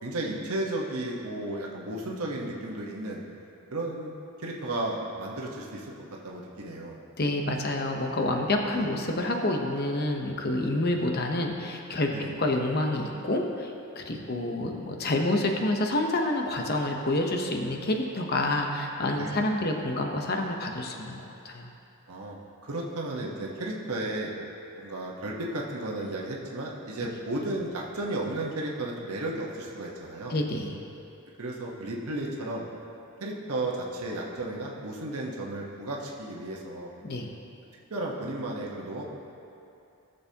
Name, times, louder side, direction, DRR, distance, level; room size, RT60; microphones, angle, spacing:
voice 1, 0.0-3.2 3.7-5.9 6.2-7.0 8.7-8.9 10.9-11.1 12.1-12.3 14.1-14.5 19.2-19.5 22.1-22.4 22.6-24.3 24.8-30.4 31.4-32.7 33.2-36.9 37.9-39.0, right 1 dB, 80° right, -2 dB, 1.1 m, -34 dB
voice 2, 7.2-21.7 30.3-30.8 37.0-37.3, left 1 dB, 45° left, 2 dB, 0.9 m, -28 dB
17.5 x 6.8 x 2.9 m, 2.7 s
head